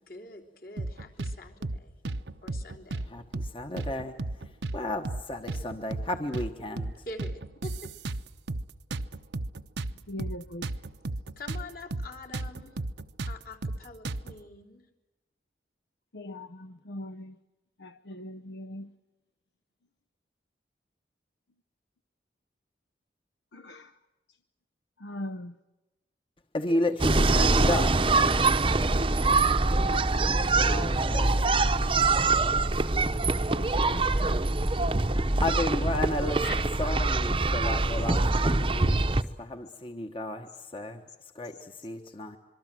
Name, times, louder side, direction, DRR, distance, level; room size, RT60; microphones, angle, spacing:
voice 1, 0.1-1.9 2.4-3.1 7.1-7.9 11.4-12.7 13.3-14.8 30.2-30.6, left 2 dB, 55° left, 3.6 m, -45 dB
sound 1, 0.8-1.4 1.6-1.8 2.0-3.1 3.3-3.5 3.8-4.8 5.0-5.2 5.5-6.5 6.8-6.9 7.2-8.6 8.9-11.6 11.9-12.1 12.3-14.4, right 2 dB, 90° right, 1.0 m, -33 dB
voice 2, 3.0-7.1 26.5-28.2 30.5-31.5 35.4-42.4, left 1 dB, 30° left, 1.3 m, -33 dB
voice 3, 10.1-10.7 16.1-17.4 17.8-18.9 23.5-23.9 25.0-25.6 29.8-30.7 33.5-34.4 36.4-36.5, left 1 dB, 75° left, 0.8 m, -40 dB
sound 2, 27.0-39.2, right 3 dB, 30° right, 0.8 m, -24 dB
26.0 x 23.5 x 7.7 m
head